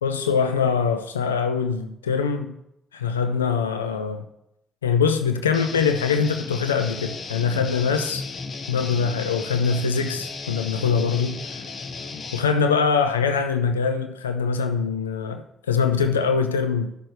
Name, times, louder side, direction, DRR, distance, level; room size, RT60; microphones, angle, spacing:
voice 1, 0.0-2.5 2.9-4.2 4.8-8.2 8.7-11.6 12.3-16.9, left 6 dB, 90° left, 0.4 m, -23 dB
Guitar, 5.5-12.4, left 4 dB, 55° left, 1.0 m, -35 dB
12.5 x 6.3 x 3.2 m
hypercardioid pair, 40°, 0 cm